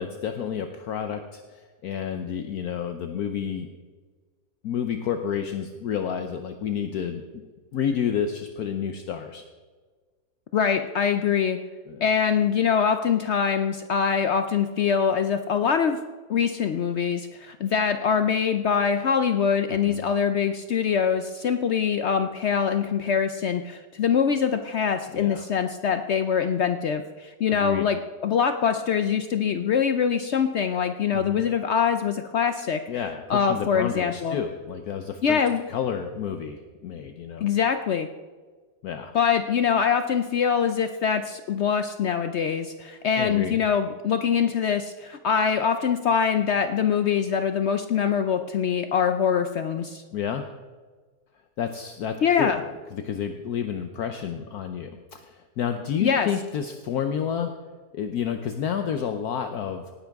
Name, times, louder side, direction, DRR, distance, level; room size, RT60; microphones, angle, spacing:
voice 1, 0.0-3.7 4.6-7.4 7.7-9.4 11.9-12.1 19.9-20.0 25.1-25.4 27.5-27.9 31.1-31.5 32.9-35.4 35.7-37.5 38.8-39.1 43.2-43.6 50.1-50.5 51.6-52.6 52.9-57.5 57.9-59.9, left 8 dB, 65° left, 6 dB, 1.2 m, -30 dB
voice 2, 10.5-11.6 12.0-16.0 16.3-32.8 33.3-34.4 35.2-35.6 37.4-38.1 39.1-50.0 52.2-52.6 56.0-56.3, left 7 dB, 80° left, 8 dB, 0.6 m, -24 dB
18.5 x 9.9 x 3.5 m, 1.4 s
omnidirectional pair, 1.8 m